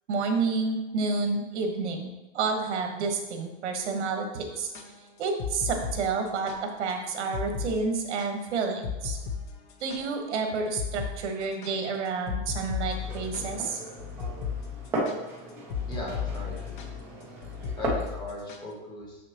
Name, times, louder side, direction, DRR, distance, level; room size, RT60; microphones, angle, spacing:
voice 1, 0.1-4.7 5.2-9.2 9.8-13.8, right 4 dB, 75° right, 4 dB, 1.4 m, -29 dB
sound 1, 4.6-6.6 6.9-7.0 7.3-7.7 8.0-10.4 10.8-11.1 11.4-18.7, left 7 dB, 45° left, 0.8 m, -35 dB
Glass, 13.0-18.1, right 2 dB, 5° right, 0.4 m, -36 dB
voice 2, 15.9-16.8 17.8-19.2, left 2 dB, 10° left, -3 dB, 1.0 m, -38 dB
6.8 x 5.9 x 3.0 m, 1.1 s
supercardioid pair, 175°, 35 cm